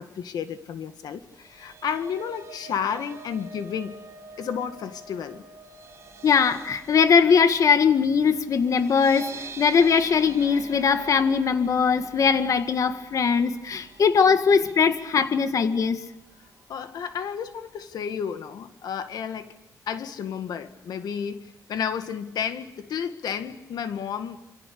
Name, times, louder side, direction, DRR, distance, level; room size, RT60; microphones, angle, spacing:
voice 1, 0.0-3.9 4.4-5.4 16.7-19.5 19.9-24.4, left 7 dB, 85° left, 9 dB, 1.9 m, -32 dB
sound 1, 1.2-15.5 15.8-16.1 16.4-16.5, right 4 dB, 45° right, 5.2 m, -46 dB
voice 2, 6.2-16.0, left 6 dB, 55° left, 9 dB, 1.9 m, -21 dB
28.0 x 27.0 x 6.9 m, 0.85 s
wide cardioid pair, 125°, 7 cm